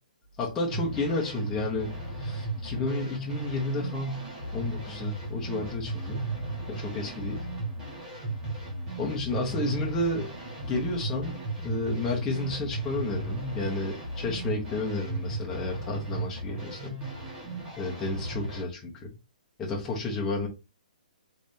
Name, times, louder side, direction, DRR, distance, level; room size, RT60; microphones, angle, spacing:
voice 1, 0.4-4.3 4.5-6.3 6.7-7.5 9.0-10.3 10.6-17.0 17.8-19.1 19.6-20.5, left 2 dB, 10° left, 0.8 m, -31 dB
sound 1, 0.7-18.6, right 2 dB, 15° right, 1.3 m, -36 dB
3.4 x 3.2 x 2.6 m
hypercardioid pair, 160°, 5 cm